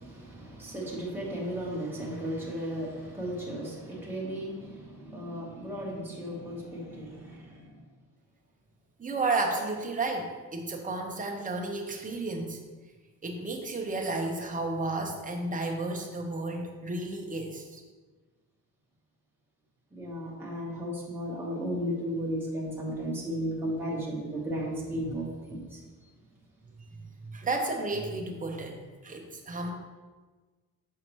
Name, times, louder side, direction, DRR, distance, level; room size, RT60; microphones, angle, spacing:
voice 1, 0.0-7.8 19.9-25.8, equal, 5° right, -5 dB, 1.3 m, -35 dB
voice 2, 9.0-12.6 13.2-17.8 27.2-28.8 29.0-29.7, right 2 dB, 25° right, 2 dB, 0.8 m, -32 dB
6.5 x 5.6 x 3.1 m, 1.4 s
wide cardioid pair, 145°, 34 cm